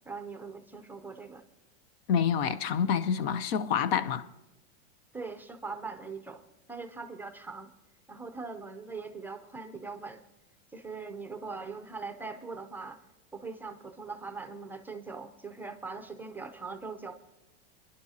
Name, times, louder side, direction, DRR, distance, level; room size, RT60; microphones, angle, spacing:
voice 1, 0.1-1.4 5.1-6.4 6.7-7.7 8.1-10.2 10.7-13.0 13.3-17.2, right 4 dB, 5° right, 0.5 m, -41 dB
voice 2, 2.1-4.3, left 7 dB, 65° left, 0.7 m, -27 dB
24.0 x 11.0 x 2.8 m
supercardioid pair, 135°, 33 cm